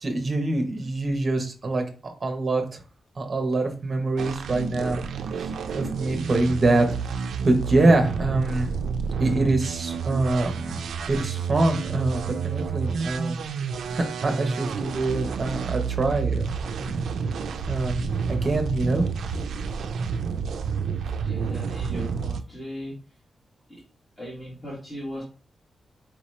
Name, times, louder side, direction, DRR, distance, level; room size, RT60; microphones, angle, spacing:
voice 1, 0.0-2.8 3.2-5.0 5.4-6.8 7.4-8.7 9.2-10.8 11.1-13.4 13.9-17.0 17.7-19.4, right 2 dB, 30° right, 4 dB, 0.8 m, -25 dB
sound 1, 4.2-22.4, right 6 dB, 85° right, 0.3 m, -29 dB
voice 2, 21.2-23.0 23.7-23.8 24.2-25.2, equal, 10° left, -6 dB, 1.1 m, -37 dB
4.5 x 2.8 x 3.1 m, 0.36 s
wide cardioid pair, 180°, 0 cm